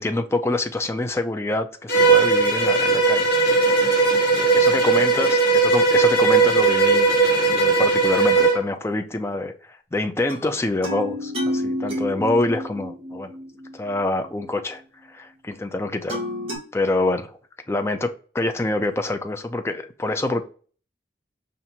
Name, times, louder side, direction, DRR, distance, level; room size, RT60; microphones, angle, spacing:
voice 1, 0.0-3.3 4.3-7.1 7.4-13.3 13.7-14.8 15.1-16.2 16.7-17.4 17.7-20.4, left 2 dB, 15° left, 0.4 m, -26 dB
Bowed string instrument, 1.9-8.6, right 4 dB, 55° left, 1.2 m, -18 dB
sound 1, 10.3-14.3 16.1-16.6, left 1 dB, 30° right, 1.7 m, -30 dB
5.7 x 2.5 x 2.8 m
head